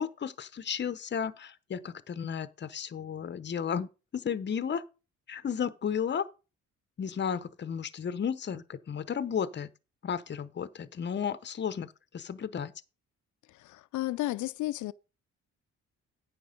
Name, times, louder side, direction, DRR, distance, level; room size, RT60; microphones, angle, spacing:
voice 1, 0.0-4.8 5.3-6.3 7.0-9.7 10.0-12.7, left 7 dB, 35° left, 0.8 m, -33 dB
voice 2, 13.5-14.9, left 16 dB, 75° left, 0.5 m, -33 dB
9.3 x 5.9 x 5.2 m
cardioid pair, 90°, 30 cm